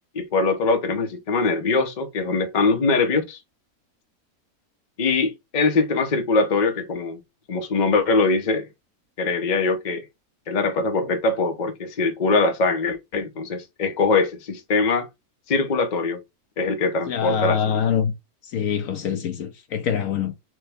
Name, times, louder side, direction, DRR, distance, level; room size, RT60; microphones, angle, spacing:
voice 1, 0.1-3.4 5.0-7.2 7.5-8.7 9.2-10.0 10.5-15.1 15.5-16.2 16.6-17.8, left 3 dB, 40° left, 0.8 m, -22 dB
voice 2, 17.1-18.1 18.5-20.3, left 8 dB, 70° left, 1.0 m, -24 dB
6.3 x 2.3 x 3.4 m
omnidirectional pair, 1.6 m